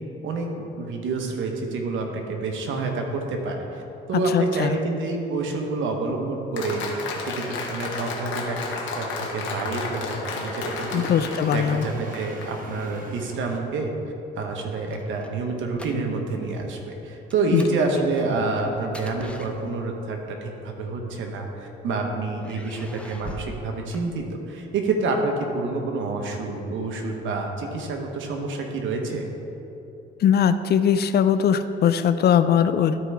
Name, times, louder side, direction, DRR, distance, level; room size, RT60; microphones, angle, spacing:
voice 1, 0.2-3.8 4.1-6.9 7.2-11.1 11.5-13.9 14.4-29.3, right 3 dB, 80° right, 2 dB, 1.1 m, -28 dB
voice 2, 4.1-4.8 10.9-11.8 17.5-17.6 30.2-33.0, left 8 dB, 55° left, 12 dB, 0.4 m, -20 dB
Applause, 6.6-12.5, left 3 dB, 75° left, 1.2 m, -32 dB
sound 1, 8.7-13.6, right 2 dB, 45° right, 1.1 m, -43 dB
sound 2, 14.5-16.4 16.7-16.9 17.3-20.1 21.0-21.8 22.4-24.7, left 1 dB, 5° left, 0.6 m, -43 dB
12.5 x 4.7 x 3.4 m, 2.9 s
cardioid pair, 90°, 20 cm